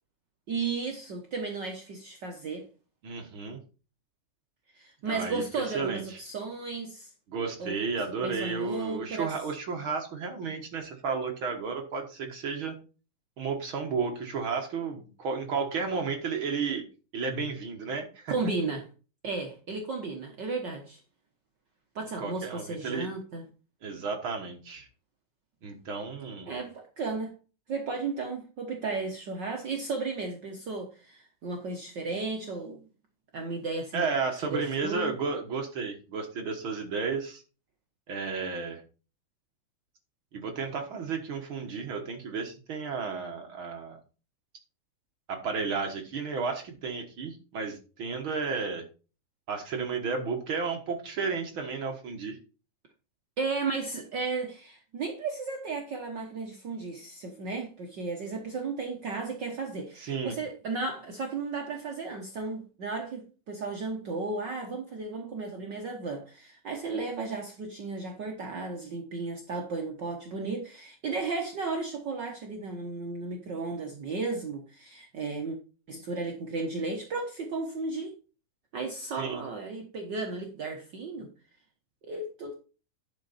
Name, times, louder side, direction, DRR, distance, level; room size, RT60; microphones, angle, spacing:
voice 1, 0.5-2.7 4.7-7.1 7.6-7.8 8.2-9.3 18.3-18.9 19.2-21.0 21.9-23.4 26.5-27.3 27.7-32.8 33.3-34.1 34.4-35.1 53.4-75.6 75.9-78.1 78.7-81.3 82.0-82.5, right 3 dB, 80° right, 1.0 m, -34 dB
voice 2, 3.0-3.6 5.0-5.4 5.7-6.2 7.3-12.7 13.4-16.8 17.1-18.3 22.2-23.1 23.8-24.9 25.6-26.5 33.9-37.4 38.1-38.8 40.3-44.0 45.3-48.8 49.5-52.4 60.0-60.3 79.2-79.4, right 5 dB, 55° right, 1.6 m, -33 dB
10.5 x 6.0 x 4.2 m
omnidirectional pair, 3.8 m